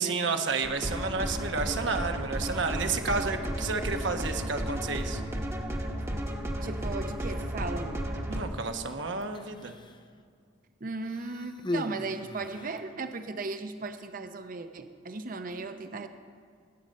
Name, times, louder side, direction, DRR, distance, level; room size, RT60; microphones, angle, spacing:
voice 1, 0.0-5.2 8.3-9.7, right 4 dB, 65° right, 5 dB, 1.1 m, -31 dB
sound 1, 0.6-8.4, equal, 15° right, 1.1 m, -33 dB
voice 2, 6.6-8.1 10.8-16.1, right 3 dB, 45° right, 8 dB, 0.7 m, -36 dB
Human voice, 9.2-10.1 11.0-13.0 13.9-14.0, left 1 dB, 25° left, 0.6 m, -38 dB
20.0 x 8.9 x 5.4 m, 2.1 s
head